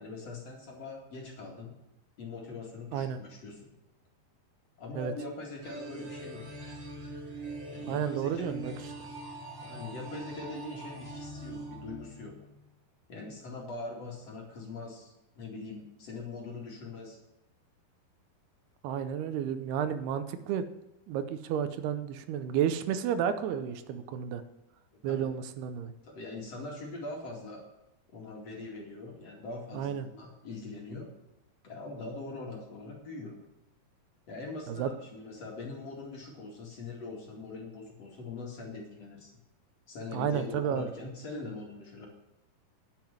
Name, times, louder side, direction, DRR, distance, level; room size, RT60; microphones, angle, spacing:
voice 1, 0.0-1.7 2.2-3.7 4.8-6.4 7.7-8.5 9.6-12.3 13.1-17.2 25.1-25.3 26.0-27.6 28.1-31.1 31.6-33.3 34.3-39.3 39.9-42.1, left 3 dB, 45° left, -1 dB, 3.0 m, -42 dB
sound 1, 5.6-12.6, right 2 dB, 35° right, 2.1 m, -42 dB
voice 2, 7.9-8.9 18.8-20.6 21.1-24.4 25.0-25.9 29.7-30.1 34.7-34.9 40.1-40.9, right 8 dB, 85° right, 10 dB, 2.7 m, -31 dB
10.5 x 7.7 x 7.2 m, 0.94 s
omnidirectional pair, 4.8 m